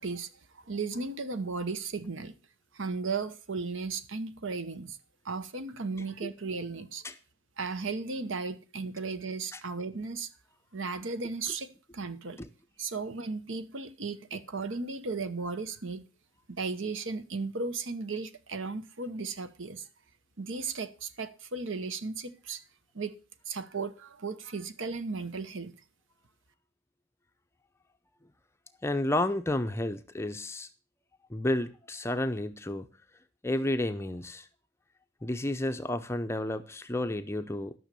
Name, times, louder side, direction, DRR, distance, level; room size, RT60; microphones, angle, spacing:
voice 1, 0.0-2.3 2.7-5.0 5.2-7.0 7.6-10.3 10.7-12.4 12.8-16.1 16.5-19.9 20.4-22.6 22.9-23.2 23.5-25.8, right 4 dB, 60° right, 0.9 m, -35 dB
voice 2, 28.8-30.7 31.3-32.9 33.4-34.5 35.2-37.7, left 1 dB, 10° left, 0.6 m, -31 dB
12.0 x 6.3 x 6.7 m
head